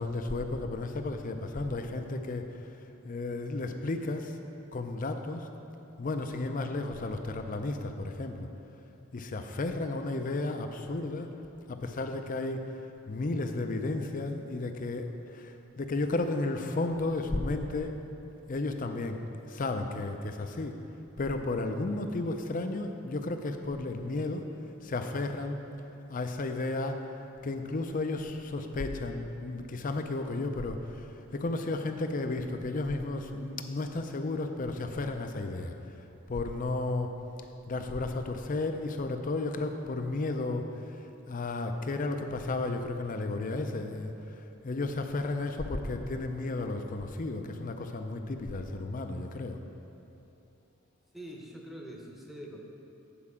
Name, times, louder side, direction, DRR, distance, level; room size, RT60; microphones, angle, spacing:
voice 1, 0.0-2.6 3.0-4.4 4.7-5.5 6.0-8.5 9.1-11.3 11.7-12.7 13.1-18.0 18.5-19.2 19.5-20.8 21.2-24.5 24.8-25.6 26.1-27.0 27.4-35.7 36.3-37.1 37.7-41.0 41.3-49.6, left 2 dB, 40° left, 6 dB, 0.5 m, -33 dB
voice 2, 51.1-52.6, equal, ahead, -1 dB, 0.8 m, -44 dB
8.6 x 4.7 x 7.1 m, 2.9 s
head